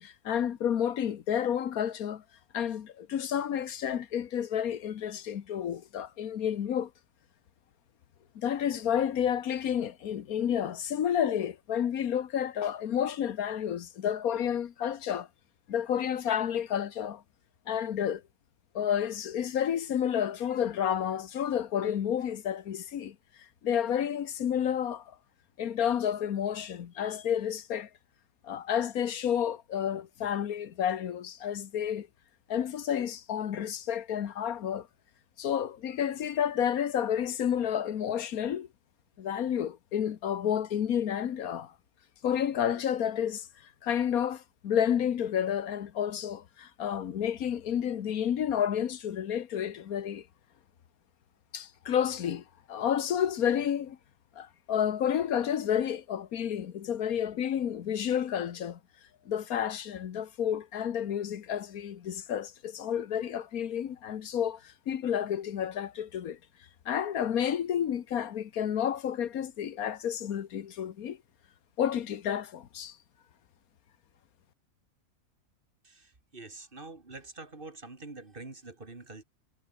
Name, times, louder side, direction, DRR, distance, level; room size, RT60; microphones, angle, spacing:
voice 1, 0.0-2.2 2.5-6.9 8.3-15.3 15.7-17.2 17.7-18.2 18.7-23.1 23.6-25.1 25.6-27.9 28.4-32.1 32.5-34.9 35.4-38.7 39.2-41.7 42.2-43.5 43.8-50.2 51.5-54.0 54.4-58.8 59.2-66.4 66.8-71.2 71.8-73.0, left 9 dB, 85° left, 1.5 m, -30 dB
voice 2, 75.8-79.2, right 3 dB, 40° right, 2.6 m, -46 dB
omnidirectional pair, 1.5 m